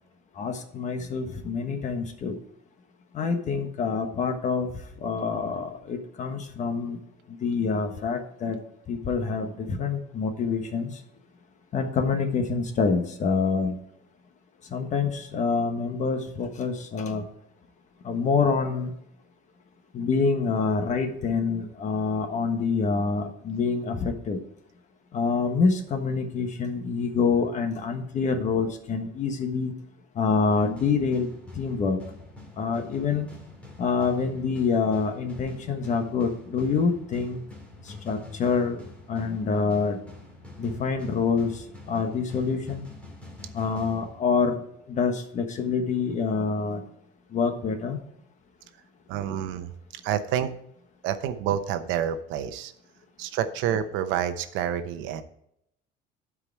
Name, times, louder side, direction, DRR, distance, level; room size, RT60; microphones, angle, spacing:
voice 1, 0.3-2.4 3.1-7.0 7.3-8.6 8.9-11.0 11.7-13.8 14.7-17.2 18.0-18.9 19.9-24.4 25.1-29.7 30.1-32.0 32.6-33.3 33.8-37.4 37.8-38.8 39.1-40.0 40.6-42.8 43.5-44.6 44.9-46.8 47.3-48.0, left 5 dB, 40° left, 6 dB, 1.3 m, -26 dB
sound 1, 30.5-44.7, left 2 dB, 5° left, 2.0 m, -46 dB
voice 2, 49.1-50.5 51.0-52.7 53.2-55.2, right 9 dB, 75° right, 9 dB, 0.9 m, -28 dB
12.0 x 4.9 x 4.6 m, 0.74 s
cardioid pair, 150°, 20 cm